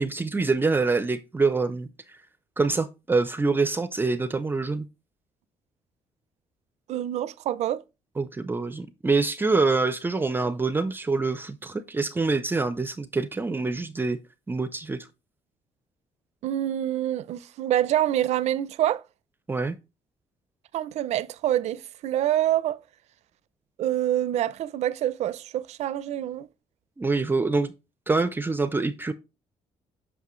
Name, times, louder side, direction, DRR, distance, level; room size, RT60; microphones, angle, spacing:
voice 1, 0.0-2.2 2.6-4.9 8.2-14.2 14.5-15.1 19.5-19.8 27.0-27.7 28.1-29.1, right 3 dB, 20° right, 0.5 m, -25 dB
voice 2, 6.9-7.8 16.4-19.0 20.7-22.8 23.8-26.5, right 12 dB, 75° right, 0.5 m, -26 dB
8.2 x 5.5 x 3.1 m
cardioid pair, 130°, 12 cm